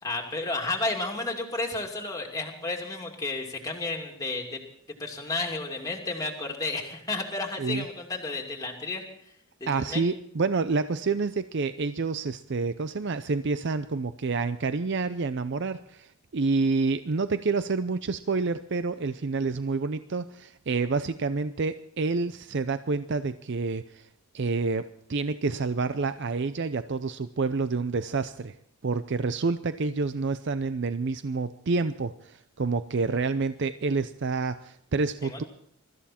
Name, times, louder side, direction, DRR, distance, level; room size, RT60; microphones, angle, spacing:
voice 1, 0.0-4.6 5.0-9.0 9.6-10.1 35.2-35.5, left 3 dB, 15° left, 1 dB, 2.6 m, -32 dB
voice 2, 9.7-24.1 24.3-28.5 28.8-35.4, right 4 dB, 55° right, 12 dB, 0.5 m, -28 dB
23.5 x 13.5 x 4.4 m, 0.68 s
head